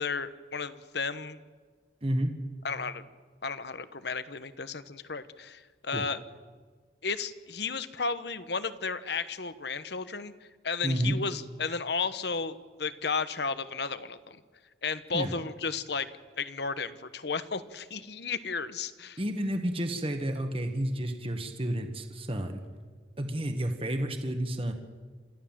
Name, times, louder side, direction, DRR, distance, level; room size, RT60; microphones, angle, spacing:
voice 1, 0.0-1.4 2.6-3.0 3.4-6.2 7.0-14.4 14.8-16.1 16.4-19.2, left 5 dB, 60° left, 13 dB, 1.0 m, -33 dB
voice 2, 2.0-2.3 5.9-6.0 10.8-11.1 15.1-15.3 19.2-22.6 23.2-24.7, right 1 dB, 30° right, 6 dB, 1.6 m, -30 dB
28.0 x 14.0 x 7.4 m, 1.5 s
head